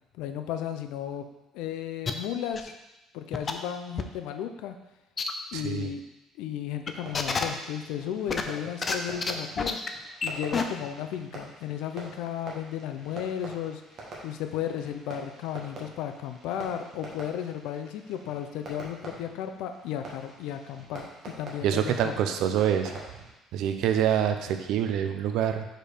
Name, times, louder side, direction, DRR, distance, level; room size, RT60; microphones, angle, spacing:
voice 1, 0.2-1.2 1.5-2.7 3.1-4.8 5.5-6.0 6.4-9.8 10.2-13.8 14.2-22.4, left 10 dB, 80° left, 7 dB, 0.5 m, -34 dB
sound 1, 2.1-2.2 2.6-2.7 3.3-3.5 4.0-4.1 5.2-5.3 5.6-5.7 6.9-7.4 8.3-8.9 9.2-9.3 9.6-9.9 10.2-10.3 10.5-10.6, left 5 dB, 20° left, 0.4 m, -28 dB
voice 2, 5.5-5.9 21.6-22.9 23.5-25.7, right 9 dB, 65° right, 7 dB, 0.5 m, -26 dB
Fireworks, 6.8-23.3, right 2 dB, 35° right, 1.3 m, -46 dB
5.1 x 4.4 x 4.9 m, 0.97 s
cardioid pair, 175°, 0 cm